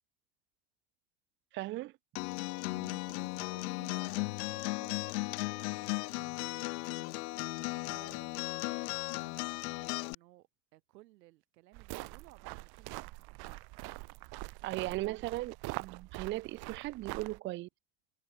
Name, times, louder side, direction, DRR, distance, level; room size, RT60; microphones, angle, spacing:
voice 1, 1.5-1.9 14.6-17.7, right 18 dB, 30° right, 0.3 m, -37 dB
Acoustic guitar, 2.2-10.1, left 28 dB, 70° left, 1.0 m, -36 dB
voice 2, 2.7-8.4 9.1-13.4 14.5-15.2, right 18 dB, 85° right, 3.9 m, -59 dB
sound 1, 11.7-17.4, right 23 dB, 50° right, 1.5 m, -44 dB
supercardioid pair, 125°, 48 cm